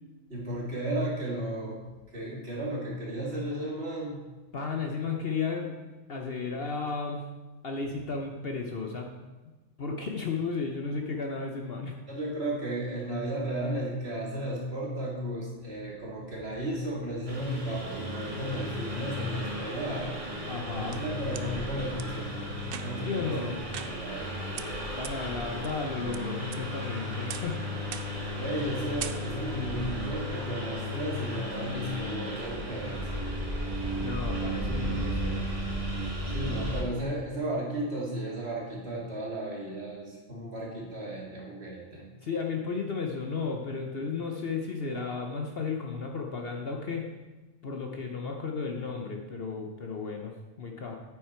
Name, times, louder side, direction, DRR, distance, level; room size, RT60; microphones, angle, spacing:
voice 1, 0.3-1.8 2.1-4.2 12.1-20.2 20.7-23.5 23.8-24.4 28.4-33.0 36.3-42.1, right 1 dB, 45° right, -4 dB, 2.7 m, -34 dB
voice 2, 4.5-5.8 6.1-7.2 7.6-9.1 9.8-12.0 20.4-21.0 23.0-23.6 25.0-27.6 27.9-28.0 34.0-35.5 42.2-47.1 47.6-51.0, left 4 dB, 50° left, 2 dB, 0.9 m, -34 dB
Engine, 17.3-36.8, equal, 25° right, 2.0 m, -34 dB
sound 1, 20.5-21.5 22.0-22.1 22.6-23.1 23.7-24.3 24.6-24.7 25.0-25.1 25.6-26.2 26.5-26.9 27.3-27.6 27.9-28.3 28.6-28.7 29.0-29.6, right 9 dB, 65° right, 0.6 m, -41 dB
9.1 x 8.3 x 4.4 m, 1.2 s
omnidirectional pair, 1.5 m